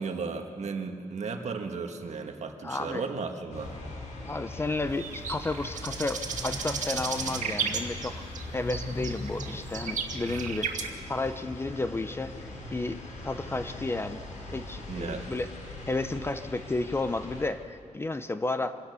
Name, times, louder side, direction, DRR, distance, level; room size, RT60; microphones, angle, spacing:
voice 1, 0.0-3.7 10.3-10.4 14.9-15.2, right 4 dB, 65° right, 4 dB, 1.7 m, -35 dB
voice 2, 2.6-3.0 4.3-8.2 8.5-14.2 14.5-15.5 15.9-18.7, left 2 dB, 20° left, 10 dB, 0.5 m, -32 dB
sound 1, 3.5-17.5, left 2 dB, 85° left, 3.7 m, -40 dB
sound 2, 4.9-8.4 8.7-10.9, right 6 dB, 85° right, 1.9 m, -34 dB
25.5 x 17.5 x 6.9 m, 2.4 s
wide cardioid pair, 180°, 13 cm